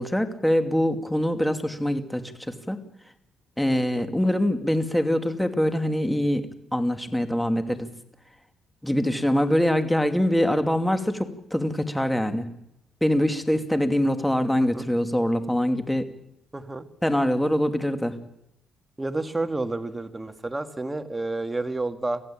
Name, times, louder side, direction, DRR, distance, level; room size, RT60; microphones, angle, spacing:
voice 1, 0.0-2.8 3.6-6.5 6.7-7.9 8.8-12.5 13.0-16.1 17.0-18.1, equal, 5° left, 7 dB, 2.6 m, -24 dB
voice 2, 16.5-16.8 19.0-22.2, right 2 dB, 15° right, 8 dB, 1.9 m, -30 dB
25.0 x 15.5 x 8.8 m, 0.80 s
cardioid pair, 90°, 0 cm